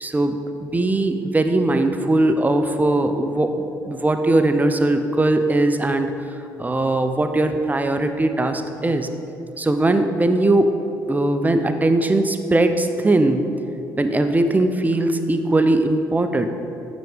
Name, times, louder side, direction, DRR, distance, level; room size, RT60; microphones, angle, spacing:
voice 1, 0.0-6.1 6.6-9.1 9.6-10.7 11.1-13.4 14.0-16.5, right 2 dB, 15° right, 7 dB, 0.5 m, -20 dB
8.9 x 3.0 x 5.0 m, 2.8 s
figure-of-eight pair, 45°, 11 cm